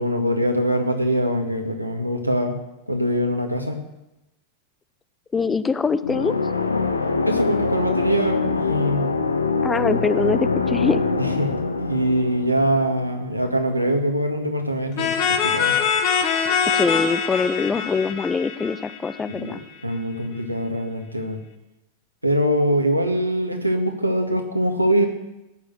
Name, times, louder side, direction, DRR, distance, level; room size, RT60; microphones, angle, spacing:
voice 1, 0.0-2.6 2.9-3.8 7.2-9.2 11.4-15.8 19.3-21.4 22.2-25.1, equal, 90° right, 3 dB, 1.9 m, -23 dB
voice 2, 5.3-6.3 9.6-11.0 16.6-19.6, left 4 dB, 15° left, 15 dB, 0.6 m, -23 dB
sound 1, 6.0-13.7, left 4 dB, 80° left, 1.0 m, -24 dB
sound 2, 15.0-19.5, left 7 dB, 45° left, 1.5 m, -23 dB
17.5 x 7.1 x 7.9 m, 0.94 s
figure-of-eight pair, 90°, 0 cm